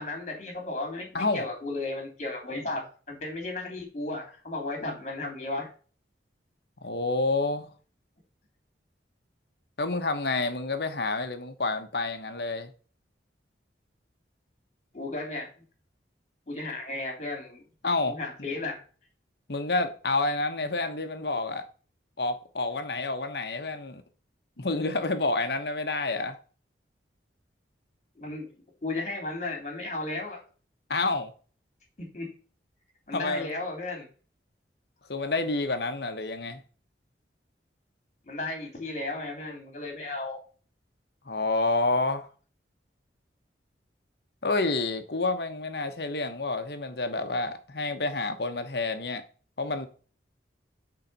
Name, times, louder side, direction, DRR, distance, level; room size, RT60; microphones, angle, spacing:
voice 1, 0.0-5.7 14.9-15.5 16.5-17.6 18.1-18.8 28.2-28.5 28.8-30.4 32.0-32.3 33.1-34.1 38.3-40.4, left 2 dB, 40° left, 2.8 m, -34 dB
voice 2, 6.8-7.7 9.8-12.7 17.8-18.2 19.5-21.6 22.2-24.0 24.6-26.4 30.9-31.3 33.1-33.6 35.1-36.6 41.3-42.3 44.4-49.2 49.6-49.9, left 3 dB, 60° left, 1.0 m, -29 dB
7.4 x 4.0 x 5.3 m
head